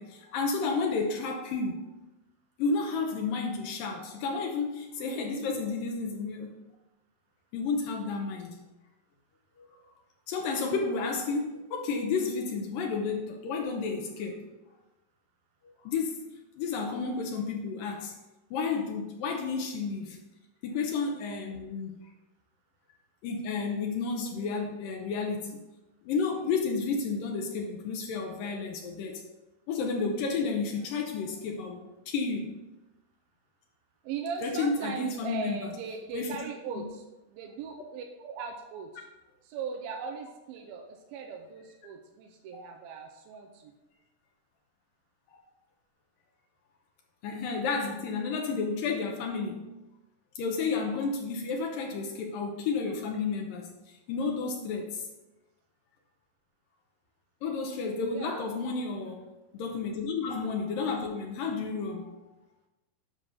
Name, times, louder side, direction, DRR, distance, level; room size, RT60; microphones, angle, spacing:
voice 1, 0.0-1.9 2.6-6.6 7.5-8.6 9.6-9.7 10.3-14.5 15.8-16.3 16.6-18.1 18.5-20.2 20.6-22.0 23.2-25.6 26.0-29.2 29.7-32.6 34.4-35.6 36.1-36.4 42.5-42.6 45.3-45.4 47.2-49.7 50.4-55.1 57.4-59.2 59.5-62.2, left 4 dB, 75° left, 2 dB, 2.4 m, -31 dB
voice 2, 34.0-39.1 39.4-43.7 58.1-58.4 59.0-59.2, right 6 dB, 90° right, 2 dB, 2.5 m, -39 dB
10.0 x 5.8 x 3.9 m, 1.0 s
omnidirectional pair, 4.2 m